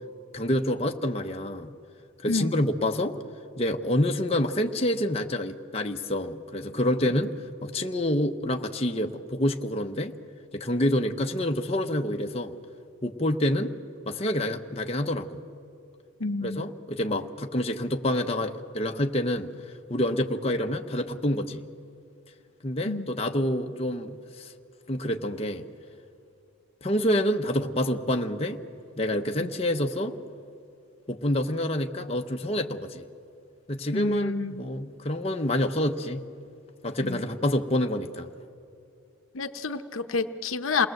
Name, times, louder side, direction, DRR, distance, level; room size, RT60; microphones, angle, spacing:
voice 1, 0.3-1.7 2.2-3.1 3.6-7.3 7.6-10.1 10.5-12.6 13.0-13.7 14.1-15.4 16.4-19.5 19.9-21.6 22.6-24.5 24.9-25.6 26.8-28.6 29.0-30.1 31.1-33.0 33.7-36.3 36.8-38.3, left 1 dB, 30° left, 3 dB, 0.9 m, -27 dB
voice 2, 16.2-16.6 22.9-23.1 29.4-29.5 33.9-34.6 37.0-37.2 39.3-40.9, left 4 dB, 70° left, 9 dB, 0.9 m, -29 dB
28.0 x 19.5 x 7.8 m, 2.5 s
head